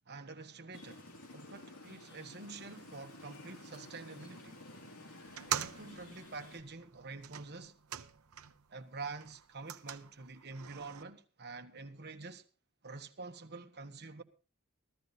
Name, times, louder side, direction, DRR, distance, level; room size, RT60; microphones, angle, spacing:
voice 1, 0.1-4.6 5.5-7.7 8.7-12.4 12.8-14.2, right 3 dB, 50° right, 1.3 m, -47 dB
sound 1, 0.7-6.6, left 2 dB, 75° left, 3.1 m, -52 dB
sound 2, 5.3-8.7 9.0-11.0, right 9 dB, 75° right, 0.8 m, -43 dB
15.0 x 13.5 x 4.1 m
head